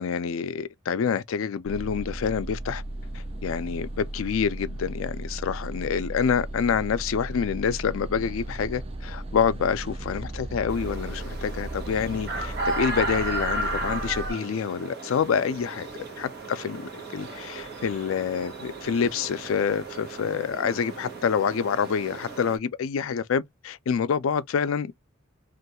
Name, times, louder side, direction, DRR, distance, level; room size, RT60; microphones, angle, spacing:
voice 1, 0.0-2.8 3.1-16.8 17.1-24.9, left 6 dB, 70° left, 0.4 m, -27 dB
sound 1, 1.6-14.3, right 1 dB, 30° right, 0.4 m, -36 dB
sound 2, 10.7-22.6, right 2 dB, 50° right, 0.9 m, -35 dB
2.4 x 2.3 x 2.8 m
head